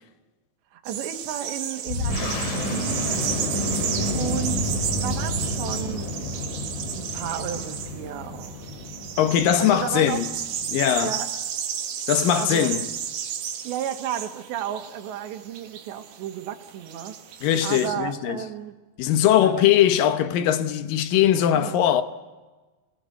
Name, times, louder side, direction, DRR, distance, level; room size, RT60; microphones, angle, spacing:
voice 1, 0.7-3.4 4.1-4.7 5.0-6.2 6.9-8.7 9.6-10.3 11.0-11.3 12.4-12.7 13.6-17.4 17.6-18.8 19.4-19.6 21.5-21.8, right 10 dB, 80° right, 3.7 m, -33 dB
sound 1, 0.8-17.9, right 8 dB, 65° right, 3.1 m, -33 dB
sound 2, 1.9-11.1, left 1 dB, 50° left, 4.7 m, -30 dB
voice 2, 9.2-10.3 10.7-11.2 12.1-12.9 17.4-18.4 19.0-22.0, left 10 dB, 70° left, 2.2 m, -20 dB
26.0 x 19.5 x 8.1 m
omnidirectional pair, 5.1 m